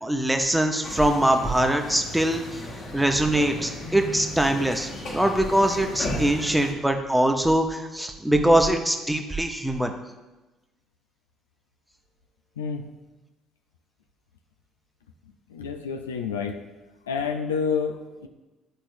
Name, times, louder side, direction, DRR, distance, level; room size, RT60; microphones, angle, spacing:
voice 1, 0.0-2.6 2.9-9.9, right 1 dB, 5° right, 4 dB, 0.8 m, -23 dB
sound 1, 0.8-6.7, left 1 dB, 50° left, 1.4 m, -35 dB
voice 2, 12.6-12.9 15.5-16.6 17.1-18.3, left 6 dB, 85° left, 6 dB, 0.3 m, -29 dB
10.5 x 4.4 x 2.6 m, 1.1 s
figure-of-eight pair, 50°, 0 cm